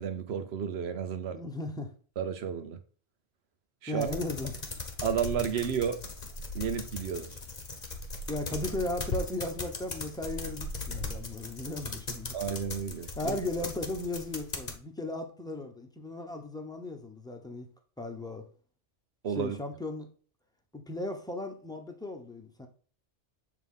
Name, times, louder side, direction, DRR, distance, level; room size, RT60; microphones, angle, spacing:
voice 1, 0.0-1.4 2.2-2.8 3.8-4.1 5.0-6.0 6.5-7.3 12.3-13.4 19.2-19.6, right 7 dB, 60° right, 1.1 m, -32 dB
voice 2, 1.3-1.9 3.9-4.5 8.3-12.4 13.2-17.7 18.0-18.5 19.4-20.1 20.7-22.7, left 2 dB, 5° left, 0.9 m, -36 dB
sound 1, 4.0-14.8, left 3 dB, 40° left, 1.1 m, -39 dB
7.3 x 3.7 x 3.7 m
omnidirectional pair, 1.2 m